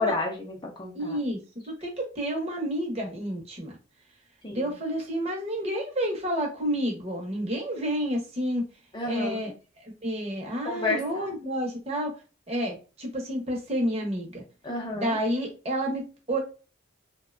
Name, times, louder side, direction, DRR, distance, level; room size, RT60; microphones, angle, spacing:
voice 1, 0.0-1.2 4.4-4.7 8.9-9.4 10.6-11.3 14.6-15.2, left 3 dB, 25° left, 1 dB, 0.5 m, -31 dB
voice 2, 0.9-1.4 1.7-3.7 4.5-8.6 9.0-9.5 9.8-12.1 12.5-14.4 14.9-16.4, equal, 35° right, 0 dB, 0.7 m, -30 dB
2.6 x 2.1 x 2.4 m, 0.33 s
head